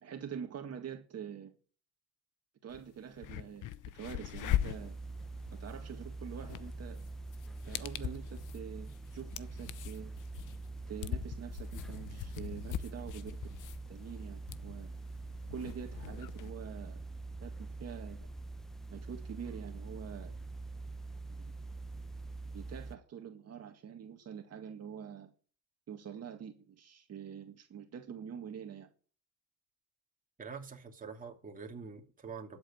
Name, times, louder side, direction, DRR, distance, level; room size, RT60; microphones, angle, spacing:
voice 1, 0.0-1.5 2.6-4.9 5.5-7.1 7.6-10.2 10.9-13.6 13.9-14.9 15.5-17.0 17.4-18.3 18.9-20.4 21.3-21.5 22.5-25.3 25.9-28.9, right 8 dB, 45° right, 2.0 m, -45 dB
sound 1, 2.7-2.8 3.1-16.5, left 13 dB, 55° left, 0.9 m, -41 dB
sound 2, 4.4-23.0, right 3 dB, ahead, 0.8 m, -44 dB
voice 2, 30.4-32.6, right 5 dB, 20° right, 2.7 m, -45 dB
12.5 x 7.9 x 8.8 m
supercardioid pair, 100°, 36 cm